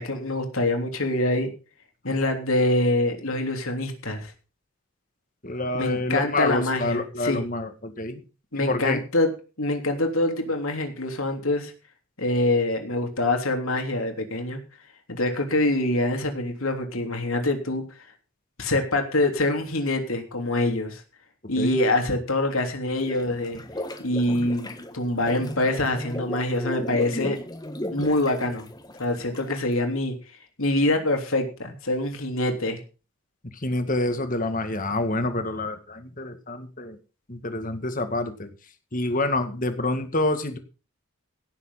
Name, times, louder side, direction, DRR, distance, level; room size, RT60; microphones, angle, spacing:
voice 1, 0.0-1.5 2.0-4.3 5.7-7.4 8.5-9.3 9.6-11.7 12.2-14.6 15.1-17.8 18.6-21.0 21.5-23.6 24.0-24.7 24.9-27.4 27.9-28.7 29.0-30.1 30.6-32.8, left 2 dB, 70° left, 4 dB, 3.3 m, -25 dB
voice 2, 5.4-8.2 8.5-9.0 21.6-21.8 33.5-37.0 37.3-38.5 38.9-40.6, left 2 dB, 35° left, 8 dB, 1.9 m, -27 dB
sound 1, 23.0-29.7, left 1 dB, 15° left, 1.4 m, -36 dB
17.0 x 7.4 x 5.7 m, 0.34 s
head